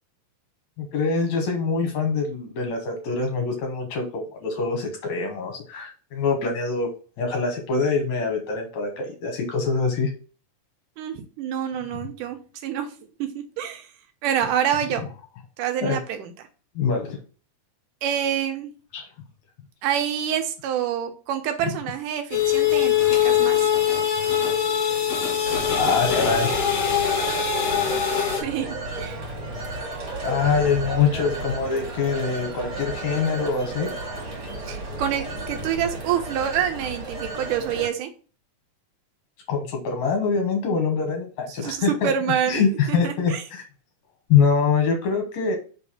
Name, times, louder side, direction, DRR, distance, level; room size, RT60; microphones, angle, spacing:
voice 1, 0.8-6.9 7.2-10.1 15.8-16.0 16.8-17.2 18.9-19.1 25.8-26.6 30.2-33.9 39.5-42.1 42.5-43.6 44.3-45.6, left 5 dB, 70° left, 3 dB, 2.3 m, -24 dB
voice 2, 11.0-12.9 13.2-13.9 14.2-15.0 15.6-16.3 18.0-18.7 19.8-23.7 28.4-29.2 34.7-38.1 41.6-42.6 42.9-43.4, right 9 dB, 85° right, 6 dB, 2.5 m, -27 dB
sound 1, 22.3-28.4, left 9 dB, 50° left, 2.7 m, -22 dB
Telephone, 25.4-37.9, right 2 dB, 55° right, 3.0 m, -33 dB
5.3 x 3.4 x 5.6 m, 0.37 s
omnidirectional pair, 3.6 m